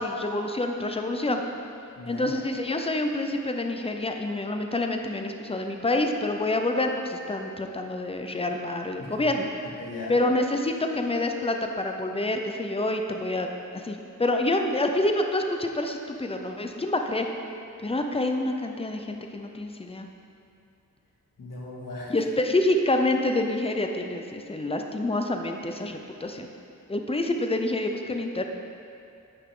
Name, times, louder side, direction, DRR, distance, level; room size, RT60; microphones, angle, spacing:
voice 1, 0.0-1.4 2.1-9.5 10.1-17.3 17.8-20.1 22.1-26.5 26.9-28.5, left 2 dB, 20° left, 4 dB, 0.6 m, -27 dB
voice 2, 2.0-2.3 9.0-9.3 9.8-10.1 21.4-22.1, left 2 dB, 85° left, -5 dB, 2.2 m, -38 dB
9.9 x 9.0 x 3.8 m, 2.6 s
wide cardioid pair, 155°, 32 cm